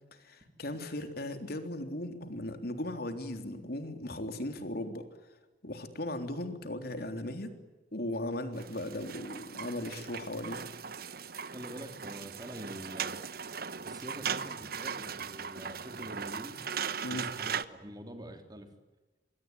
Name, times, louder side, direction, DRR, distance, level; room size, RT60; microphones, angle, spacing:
voice 1, 0.2-5.0 5.6-7.5 7.9-10.7 17.0-17.3, left 1 dB, 60° left, 7 dB, 3.6 m, -37 dB
sound 1, 8.5-17.7, right 7 dB, 55° right, 1.2 m, -38 dB
voice 2, 11.5-13.1 13.8-16.6 17.1-18.7, right 1 dB, 25° right, 6 dB, 3.8 m, -46 dB
26.5 x 23.0 x 9.5 m, 1.1 s
head